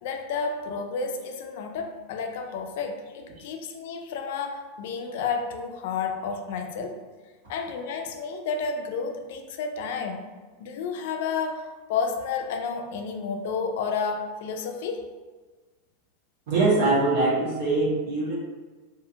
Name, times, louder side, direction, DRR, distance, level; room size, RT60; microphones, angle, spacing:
voice 1, 0.0-7.0 7.5-10.2 10.6-15.1, left 5 dB, 55° left, 5 dB, 0.3 m, -31 dB
voice 2, 16.5-18.3, right 2 dB, 65° right, -6 dB, 1.1 m, -22 dB
2.4 x 2.4 x 2.7 m, 1.3 s
supercardioid pair, 170°, 0 cm